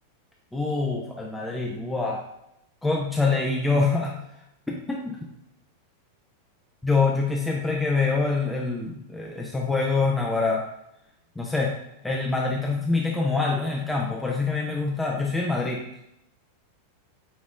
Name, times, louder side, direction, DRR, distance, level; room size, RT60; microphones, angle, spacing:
voice 1, 0.5-2.2 2.8-4.2 4.7-5.2 6.8-10.6 11.4-11.7 12.0-15.8, left 3 dB, 5° left, -2 dB, 0.6 m, -25 dB
6.0 x 3.0 x 2.5 m, 0.81 s
figure-of-eight pair, 90°, 0 cm